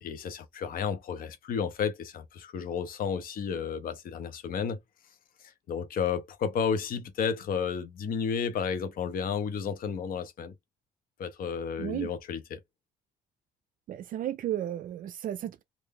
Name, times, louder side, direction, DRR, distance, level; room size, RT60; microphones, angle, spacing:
voice 1, 0.0-4.8 5.4-10.5 11.2-12.6, left 6 dB, 55° left, 0.9 m, -32 dB
voice 2, 11.8-12.1 13.9-15.6, right 11 dB, 55° right, 0.4 m, -33 dB
3.6 x 2.6 x 3.2 m
cardioid pair, 110°, 17 cm